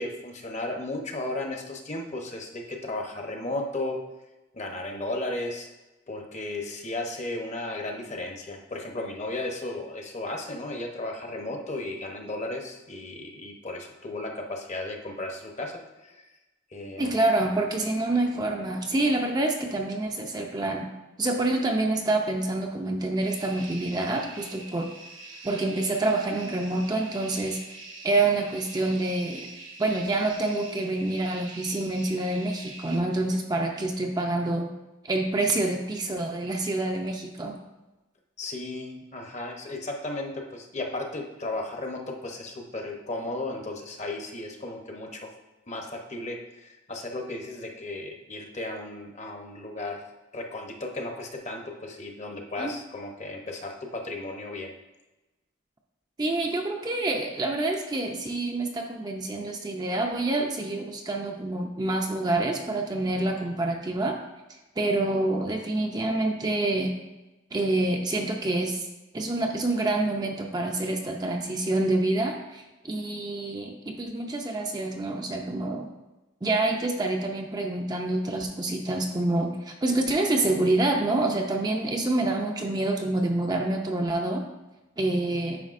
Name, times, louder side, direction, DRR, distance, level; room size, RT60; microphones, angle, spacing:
voice 1, 0.0-4.0 4.5-5.7 6.1-16.3 16.7-17.1 38.4-45.3 45.7-50.0 50.3-54.7 75.5-75.6, left 2 dB, 35° left, 2 dB, 0.8 m, -35 dB
voice 2, 17.0-20.9 21.2-24.9 25.4-27.6 28.0-29.5 29.8-34.7 35.0-37.6 52.6-52.7 56.2-64.2 64.8-66.9 67.5-68.9 69.1-75.9 76.4-84.4 85.0-85.6, right 2 dB, 20° right, 2 dB, 0.4 m, -27 dB
sound 1, 23.2-33.0, right 2 dB, 75° right, 1.2 m, -44 dB
9.4 x 5.4 x 2.5 m, 1.1 s
head